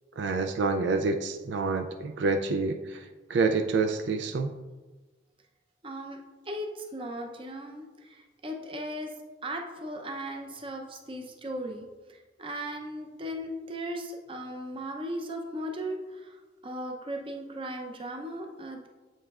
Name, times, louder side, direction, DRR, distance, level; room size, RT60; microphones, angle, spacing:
voice 1, 0.2-3.0 3.3-4.6, right 4 dB, 75° right, 6 dB, 0.4 m, -27 dB
voice 2, 5.8-6.2 6.5-9.1 9.4-16.4 16.6-18.9, equal, 30° right, 2 dB, 0.6 m, -37 dB
7.7 x 5.4 x 2.4 m, 1.2 s
head